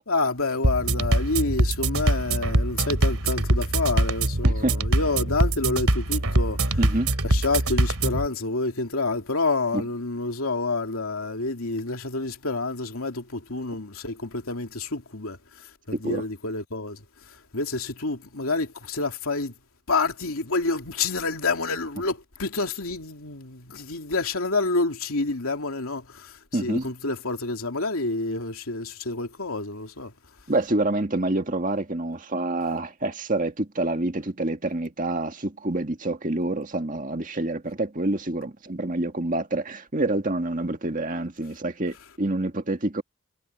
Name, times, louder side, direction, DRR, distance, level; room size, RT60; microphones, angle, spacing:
voice 1, 0.1-6.8 7.2-19.5 19.9-30.1, left 3 dB, 75° left, 2.7 m, -28 dB
sound 1, 0.6-8.3, right 1 dB, 80° right, 2.8 m, -23 dB
voice 2, 4.4-4.8 6.8-7.2 9.7-9.8 15.9-16.2 26.5-26.9 30.5-43.0, right 2 dB, 35° right, 1.9 m, -27 dB
head